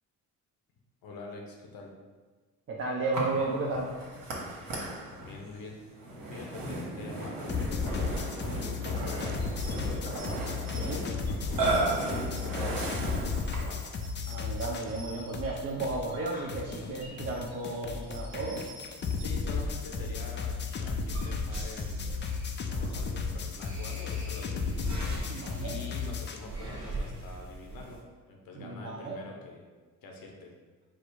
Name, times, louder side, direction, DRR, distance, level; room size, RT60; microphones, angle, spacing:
voice 1, 1.0-1.9 4.6-10.1 10.6-13.8 17.1-17.3 19.2-22.3 22.8-25.0 25.6-28.0 28.3-29.7 30.0-30.5, left 2 dB, 85° left, 1 dB, 0.9 m, -46 dB
voice 2, 2.7-3.9 10.7-11.0 14.3-18.7 25.3-25.8 28.6-29.2, right 3 dB, 35° right, -3 dB, 0.5 m, -34 dB
Burping eructation, 3.1-13.8, right 2 dB, 75° right, 1.3 m, -35 dB
sound 1, 7.5-15.1 15.3-26.4, left 5 dB, 35° left, 0.4 m, -34 dB
sound 2, 8.8-28.0, right 2 dB, 50° right, 1.2 m, -45 dB
4.8 x 2.1 x 4.6 m, 1.4 s
cardioid pair, 110°, 34 cm